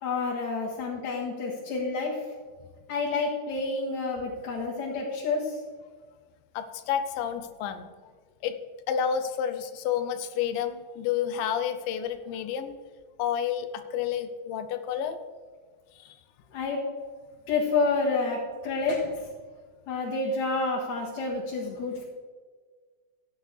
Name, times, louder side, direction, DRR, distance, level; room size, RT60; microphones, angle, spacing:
voice 1, 0.0-2.2 2.9-5.6 16.5-16.8 17.5-19.3 19.9-22.0, left 3 dB, 60° left, -5 dB, 2.6 m, -29 dB
voice 2, 6.5-7.9 8.4-8.6 8.9-12.7 13.2-15.2 16.0-16.2, left 8 dB, 90° left, 10 dB, 2.5 m, -30 dB
15.5 x 9.6 x 3.3 m, 1.5 s
omnidirectional pair, 3.9 m